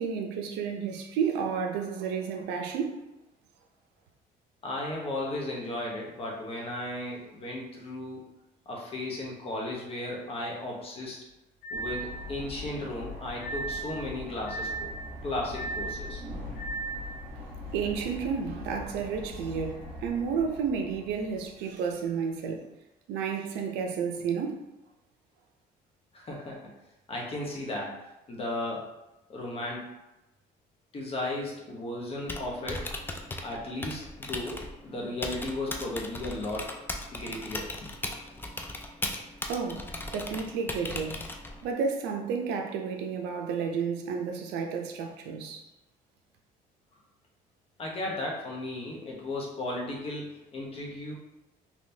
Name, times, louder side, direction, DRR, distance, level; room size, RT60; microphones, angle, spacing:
voice 1, 0.0-3.1 17.0-17.1 17.4-17.5 17.7-22.6 23.1-24.6 39.5-39.8 40.1-41.2 41.6-45.6, right 6 dB, 90° right, 3 dB, 0.5 m, -31 dB
voice 2, 4.6-8.2 8.7-11.2 11.7-14.9 15.2-16.2 26.1-26.7 27.1-28.0 28.3-28.9 29.3-29.9 30.9-32.9 33.4-36.8 37.1-37.9 47.8-51.1, left 1 dB, 35° left, -2 dB, 0.9 m, -35 dB
sound 1, 11.6-12.2 13.4-13.9 14.5-15.0 15.5-16.0 16.6-17.1, right 3 dB, 65° left, 1.0 m, -35 dB
sound 2, 11.7-21.9, left 2 dB, 35° right, 1.4 m, -42 dB
Typing, 32.1-41.7, left 2 dB, 10° left, 0.4 m, -38 dB
3.4 x 2.9 x 2.7 m, 0.97 s
cardioid pair, 110°, 17 cm